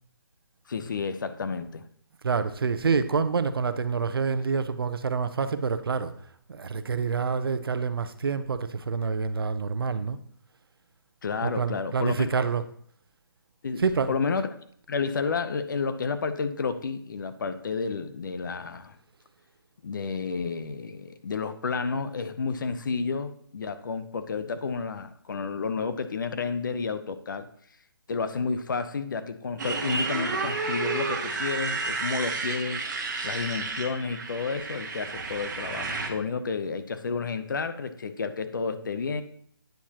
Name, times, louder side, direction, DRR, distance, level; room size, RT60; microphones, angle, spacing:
voice 1, 0.7-1.9 11.2-12.5 13.6-13.8 14.1-14.5 14.9-19.0 19.8-27.5 28.1-32.8 33.2-39.2, left 5 dB, 55° left, 0.7 m, -31 dB
voice 2, 2.2-6.1 6.5-10.2 11.4-12.6 13.8-14.1, right 5 dB, 75° right, 0.7 m, -27 dB
Motorcycle, 29.6-36.1, right 4 dB, 50° right, 1.3 m, -31 dB
9.1 x 7.2 x 2.9 m
hypercardioid pair, 165°, 12 cm